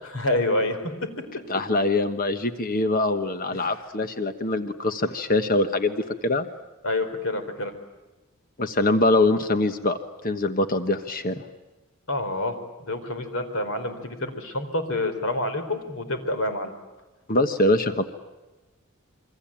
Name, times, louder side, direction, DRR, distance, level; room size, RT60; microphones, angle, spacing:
voice 1, 0.1-0.9 3.5-3.8 6.8-7.7 12.1-16.7, left 1 dB, 70° left, 8 dB, 4.2 m, -28 dB
voice 2, 1.5-6.5 8.6-10.0 10.2-11.4 17.3-18.0, left 2 dB, 40° left, 9 dB, 1.3 m, -23 dB
28.0 x 23.5 x 8.9 m, 1.1 s
head